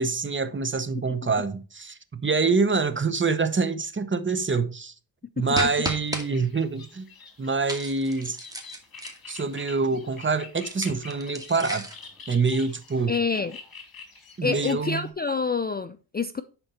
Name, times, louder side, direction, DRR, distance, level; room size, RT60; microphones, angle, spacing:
voice 1, 0.0-4.9 5.4-7.1 7.4-8.4 9.3-11.8 12.3-13.2 14.4-15.1, right 4 dB, 25° right, 0.9 m, -26 dB
sound 1, 5.5-15.1, left 4 dB, 50° left, 2.7 m, -46 dB
sound 2, 5.5-6.2 7.7-9.5 10.6-12.1, right 1 dB, 10° right, 2.1 m, -34 dB
voice 2, 13.1-13.6 14.4-16.4, left 5 dB, 20° left, 0.4 m, -27 dB
10.5 x 4.4 x 4.3 m
cardioid pair, 80°, 45 cm